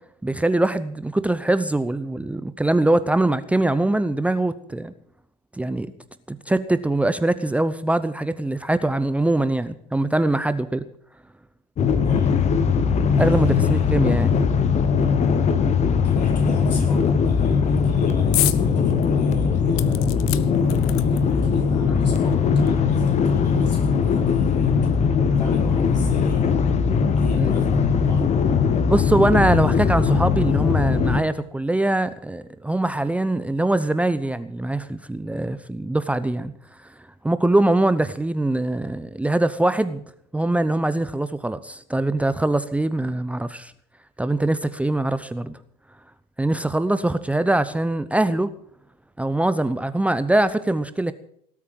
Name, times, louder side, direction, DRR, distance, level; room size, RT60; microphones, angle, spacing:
voice 1, 0.2-4.9 5.5-5.9 6.3-10.8 13.2-14.4 27.4-27.5 28.9-36.5 36.8-36.9 37.2-40.0 40.3-43.7 44.2-45.6 46.4-48.5 49.2-51.1, right 2 dB, 5° right, 13 dB, 0.7 m, -22 dB
sound 1, 11.8-31.2, left 6 dB, 35° left, 1.4 m, -20 dB
voice 2, 12.0-12.4 13.2-14.3 16.0-24.7 25.4-26.7 27.1-28.3, left 2 dB, 80° left, -1 dB, 5.8 m, -39 dB
sound 2, 18.3-18.6 19.0-19.1 19.8-21.4 22.3-22.4 22.7-22.8, left 18 dB, 60° left, 0.9 m, -27 dB
18.5 x 8.4 x 7.4 m, 0.66 s
figure-of-eight pair, 75°, 21 cm